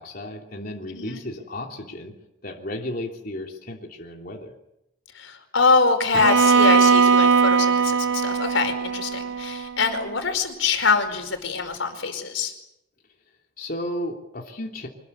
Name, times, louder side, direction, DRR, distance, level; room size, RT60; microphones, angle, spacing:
voice 1, 0.0-2.1 2.4-4.5 13.6-14.9, left 1 dB, 50° left, 0 dB, 3.2 m, -34 dB
voice 2, 5.1-12.5, left 4 dB, 90° left, 7 dB, 5.1 m, -24 dB
Bowed string instrument, 6.1-10.2, right 5 dB, 85° right, 1.0 m, -20 dB
25.5 x 20.5 x 8.7 m, 0.84 s
head